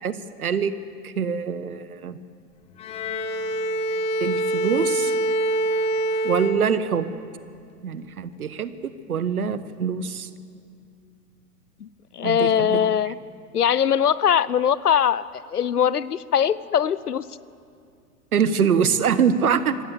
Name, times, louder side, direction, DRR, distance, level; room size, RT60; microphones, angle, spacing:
voice 1, 0.0-0.7 1.0-2.2 4.2-5.1 6.2-7.1 7.8-10.3 12.2-12.9 18.3-19.8, right 7 dB, 65° right, 14 dB, 1.3 m, -24 dB
Bowed string instrument, 2.8-7.2, right 1 dB, 15° left, 0.7 m, -25 dB
voice 2, 12.1-13.1 13.5-17.3, left 8 dB, 75° left, 20 dB, 0.8 m, -21 dB
25.5 x 16.5 x 8.2 m, 2.4 s
figure-of-eight pair, 105°, 47 cm